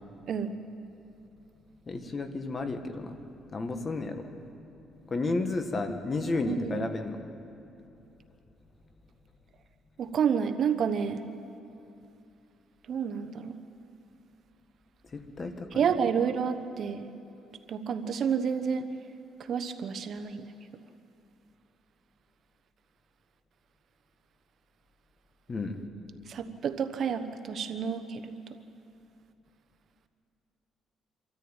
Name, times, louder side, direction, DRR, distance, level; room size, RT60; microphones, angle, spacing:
voice 1, 1.9-3.2 3.5-4.3 5.1-7.2 15.1-15.8 25.5-25.8, left 3 dB, 30° left, 7 dB, 1.7 m, -32 dB
voice 2, 6.4-6.8 10.0-11.2 12.9-13.6 15.7-17.1 17.7-18.9 19.4-20.5 26.3-28.4, right 7 dB, 55° right, 8 dB, 1.1 m, -30 dB
26.0 x 13.5 x 9.0 m, 2.7 s
cardioid pair, 110°, 0 cm